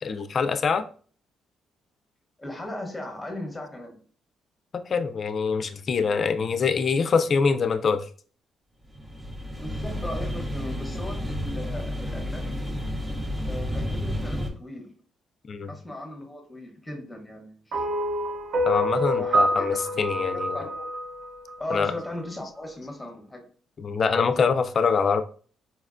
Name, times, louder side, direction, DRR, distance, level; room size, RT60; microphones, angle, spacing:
voice 1, 0.0-0.8 4.7-8.1 15.5-15.7 18.6-20.6 21.7-21.9 23.8-25.2, left 5 dB, 45° left, 0.3 m, -24 dB
voice 2, 2.4-3.9 9.5-12.6 13.4-15.0 15.6-18.0 19.1-19.6 20.3-20.9 21.6-23.4, left 1 dB, 15° left, 0.8 m, -37 dB
sound 1, 8.9-14.5, left 1 dB, 25° right, 0.7 m, -31 dB
sound 2, 17.7-22.1, equal, 80° right, 0.6 m, -27 dB
4.1 x 2.1 x 2.4 m
cardioid pair, 90°, 0 cm